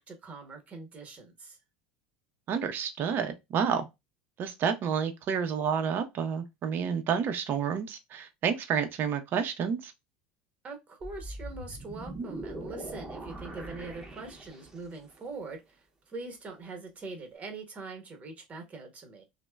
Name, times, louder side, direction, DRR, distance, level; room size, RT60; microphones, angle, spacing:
voice 1, 0.0-1.6 10.6-19.2, right 3 dB, 30° right, 1.0 m, -43 dB
voice 2, 2.5-3.9 4.4-9.9, right 7 dB, 45° right, 0.6 m, -30 dB
sound 1, 11.0-15.0, right 2 dB, 15° right, 0.8 m, -41 dB
2.9 x 2.1 x 2.2 m
hypercardioid pair, 85°, 5 cm